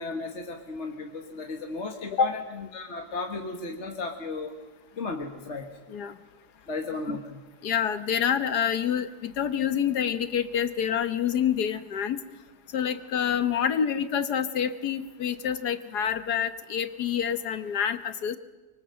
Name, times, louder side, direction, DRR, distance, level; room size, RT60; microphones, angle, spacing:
voice 1, 0.0-4.5 5.0-5.8 6.7-7.4, left 3 dB, 45° left, 3 dB, 1.8 m, -35 dB
voice 2, 7.6-12.2 12.7-18.4, left 8 dB, 70° left, 11 dB, 1.7 m, -27 dB
24.5 x 24.0 x 7.7 m, 1.2 s
omnidirectional pair, 1.8 m